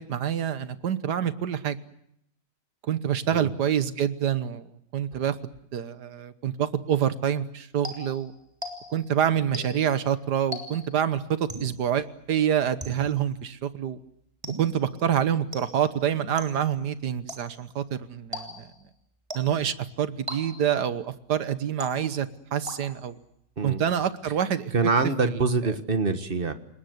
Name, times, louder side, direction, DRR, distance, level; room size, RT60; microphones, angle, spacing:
voice 1, 0.0-1.8 2.8-4.7 4.9-8.3 8.9-14.0 14.6-18.7 19.3-23.2 23.6-24.7 25.2-25.8, right 9 dB, 75° right, 13 dB, 1.7 m, -27 dB
sound 1, 7.8-9.1 9.5-10.0 10.5-11.0 11.5-11.9 12.8-13.3 14.4-14.9 15.5-16.0 16.4-16.8 17.3-17.7 18.3-18.8 19.3-19.7 20.3-20.8 21.8-22.3 22.7-23.2, equal, 15° right, 3.5 m, -39 dB
voice 2, 24.7-26.5, right 4 dB, 35° right, 9 dB, 1.5 m, -25 dB
28.5 x 19.0 x 8.0 m, 0.74 s
omnidirectional pair, 1.8 m